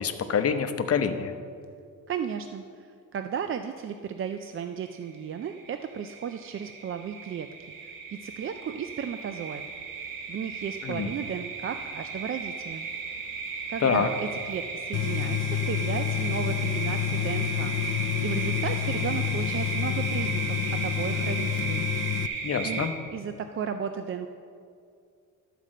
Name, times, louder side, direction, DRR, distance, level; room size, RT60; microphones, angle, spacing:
voice 1, 0.0-1.3 10.8-11.1 13.8-14.1 22.4-22.9, left 6 dB, 45° left, 8 dB, 0.8 m, -26 dB
voice 2, 2.1-2.9 3.1-7.5 7.8-9.6 10.3-12.9 13.7-14.1 14.5-17.8 18.2-21.8 22.6-22.8 23.1-24.3, right 7 dB, 40° right, 7 dB, 0.4 m, -34 dB
sound 1, 4.8-5.1 5.4-22.9, right 5 dB, 80° right, 1.5 m, -35 dB
Tools, 14.9-22.3, left 12 dB, 65° left, 0.4 m, -29 dB
12.5 x 5.1 x 7.5 m, 2.3 s
cardioid pair, 130°, 34 cm